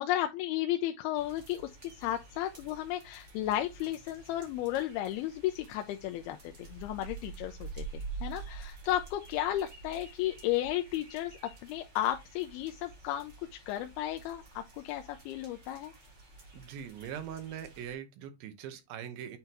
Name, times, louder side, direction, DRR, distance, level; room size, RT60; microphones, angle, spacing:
voice 1, 0.0-11.3 11.6-13.3 13.7-15.9, left 13 dB, 90° left, 2.6 m, -34 dB
sound 1, 1.1-18.0, right 4 dB, 35° right, 2.5 m, -48 dB
voice 2, 16.5-19.4, right 9 dB, 75° right, 2.7 m, -42 dB
9.0 x 3.7 x 2.9 m
omnidirectional pair, 4.4 m